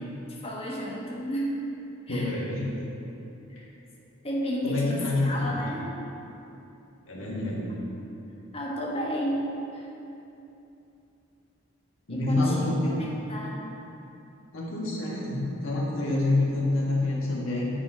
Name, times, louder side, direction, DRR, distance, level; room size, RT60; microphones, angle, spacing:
voice 1, 0.4-1.6 2.1-2.3 3.5-3.6 4.2-5.9 8.5-9.5 9.7-9.8 12.1-12.7 13.0-13.6, equal, 30° left, -4 dB, 1.2 m, -31 dB
voice 2, 2.1-2.8 4.6-5.6 7.1-7.8 12.1-13.1 14.5-17.7, left 2 dB, 85° left, -5 dB, 1.6 m, -27 dB
8.3 x 4.0 x 5.0 m, 2.9 s
head